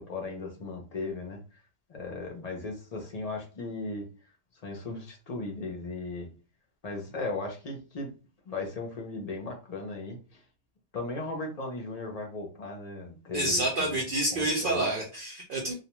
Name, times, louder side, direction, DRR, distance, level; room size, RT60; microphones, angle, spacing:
voice 1, 0.0-1.6 1.9-4.1 4.6-6.3 6.8-8.1 8.5-10.4 10.9-14.0 14.3-14.9, left 3 dB, 45° left, 1 dB, 0.6 m, -37 dB
voice 2, 13.3-15.7, right 1 dB, 55° right, -2 dB, 0.7 m, -28 dB
2.4 x 2.2 x 2.9 m, 0.35 s
omnidirectional pair, 1.2 m